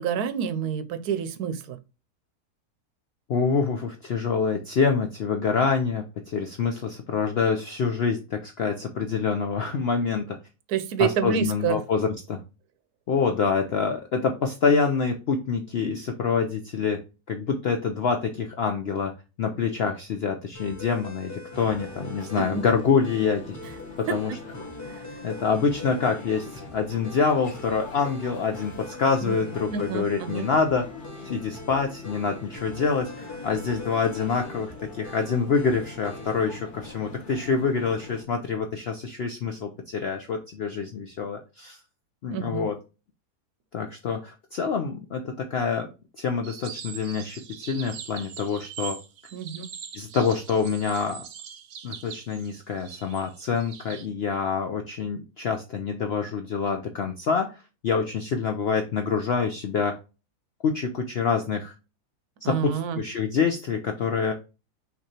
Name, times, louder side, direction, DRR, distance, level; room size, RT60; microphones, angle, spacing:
voice 1, 0.0-1.8 10.7-11.8 22.4-22.6 23.6-23.7 24.1-24.2 24.8-25.2 29.2-29.4 29.7-30.5 42.3-42.7 49.3-49.7 62.4-63.0, right 7 dB, 75° right, 11 dB, 1.1 m, -28 dB
voice 2, 3.3-10.4 11.0-12.4 13.1-17.0 17.3-19.1 19.4-23.6 24.0-24.3 25.2-30.8 31.2-41.8 42.2-42.7 43.7-45.9 46.2-49.0 49.9-51.2 51.8-60.0 60.6-61.7 62.4-64.3, left 5 dB, 70° left, 5 dB, 0.6 m, -26 dB
sound 1, 20.5-36.6, left 2 dB, 15° left, 0.6 m, -42 dB
sound 2, 21.5-38.2, left 3 dB, 35° left, 1.1 m, -44 dB
sound 3, 46.4-54.1, right 8 dB, 60° right, 0.8 m, -42 dB
5.9 x 3.0 x 2.8 m, 0.30 s
omnidirectional pair, 1.7 m